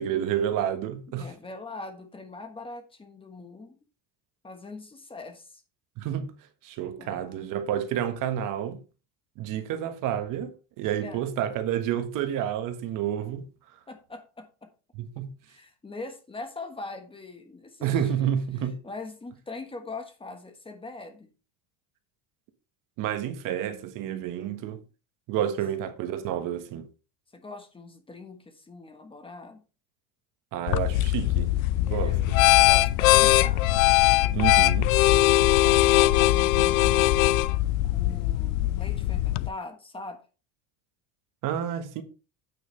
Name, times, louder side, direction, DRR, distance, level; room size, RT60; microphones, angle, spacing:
voice 1, 0.0-1.3 6.0-6.3 6.6-8.8 9.4-13.4 15.0-15.3 17.8-18.8 23.0-24.8 25.3-26.9 30.5-31.5 31.9-32.2 34.3-34.9 41.4-42.0, right 10 dB, 50° right, 1.4 m, -29 dB
voice 2, 1.1-3.8 4.4-5.6 7.0-7.5 11.0-11.2 13.9-14.7 15.5-18.4 18.8-21.3 25.4-25.6 27.3-29.6 31.9-32.3 32.5-33.7 35.1-37.1 37.8-40.2, left 3 dB, 15° left, 1.3 m, -42 dB
sound 1, 30.7-39.5, left 16 dB, 90° left, 0.6 m, -21 dB
9.1 x 9.1 x 3.2 m
cardioid pair, 145°, 40 cm